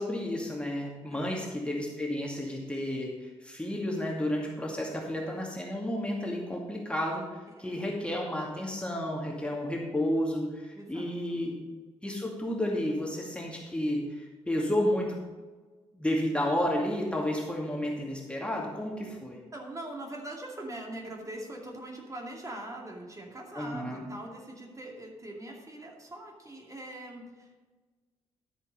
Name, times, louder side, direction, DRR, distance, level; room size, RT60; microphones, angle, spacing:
voice 1, 0.0-7.2 7.6-11.6 12.0-15.2 15.9-19.4 23.6-24.0, left 1 dB, 10° left, -2 dB, 2.3 m, -31 dB
voice 2, 1.1-1.5 7.6-7.8 10.7-11.4 19.3-27.6, right 1 dB, 20° right, -1 dB, 2.4 m, -42 dB
13.0 x 5.3 x 5.3 m, 1.3 s
figure-of-eight pair, 40°, 14 cm